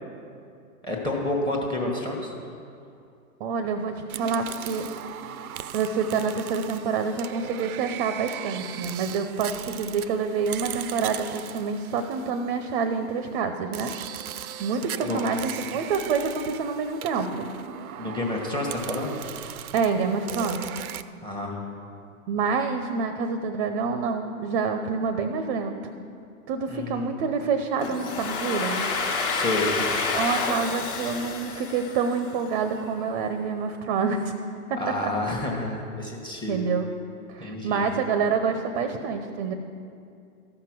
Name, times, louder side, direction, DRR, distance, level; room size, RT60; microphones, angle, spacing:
voice 1, 0.8-2.3 15.1-15.2 18.0-19.2 21.2-21.6 26.7-27.1 29.3-29.8 34.7-36.6 37.4-37.8, left 2 dB, 10° left, 0 dB, 1.3 m, -29 dB
voice 2, 3.4-4.9 5.7-13.9 14.6-17.5 19.7-20.8 22.3-25.8 26.5-28.9 30.1-34.3 34.7-34.8 36.5-36.9 37.3-39.5, right 5 dB, 35° right, 8 dB, 0.7 m, -27 dB
sound 1, 4.1-12.9 13.7-21.0, right 10 dB, 75° right, 0.6 m, -38 dB
Domestic sounds home sounds, 27.8-32.6, left 4 dB, 30° left, 1.4 m, -29 dB
14.0 x 5.9 x 6.1 m, 2.4 s
hypercardioid pair, 125°, 44 cm